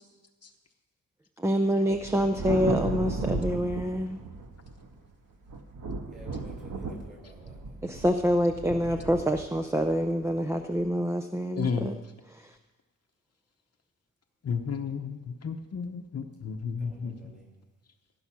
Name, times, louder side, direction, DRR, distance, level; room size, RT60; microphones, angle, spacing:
voice 1, 1.4-4.2 7.8-11.9 12.3-12.4, equal, 10° right, 6 dB, 0.4 m, -26 dB
Thunder, 1.9-5.0 5.5-10.8, right 3 dB, 70° right, 1.4 m, -35 dB
voice 2, 6.1-7.8 16.8-17.5, equal, 25° right, -1 dB, 5.0 m, -49 dB
voice 3, 11.5-11.9 14.4-17.1, left 6 dB, 50° left, 4 dB, 0.8 m, -32 dB
16.0 x 9.2 x 6.1 m, 1.3 s
wide cardioid pair, 160°, 34 cm